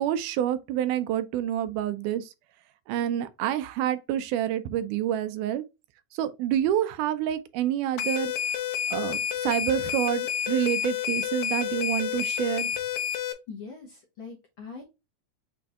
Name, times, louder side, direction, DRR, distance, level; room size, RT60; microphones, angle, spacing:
voice 1, 0.0-2.3 2.9-5.6 6.1-8.3 8.9-12.7, right 11 dB, 85° right, 2.1 m, -28 dB
sound 1, 8.0-13.3, left 9 dB, 75° left, 1.8 m, -29 dB
voice 2, 13.5-14.8, left 5 dB, 60° left, 1.3 m, -42 dB
6.1 x 2.5 x 3.5 m
omnidirectional pair, 3.6 m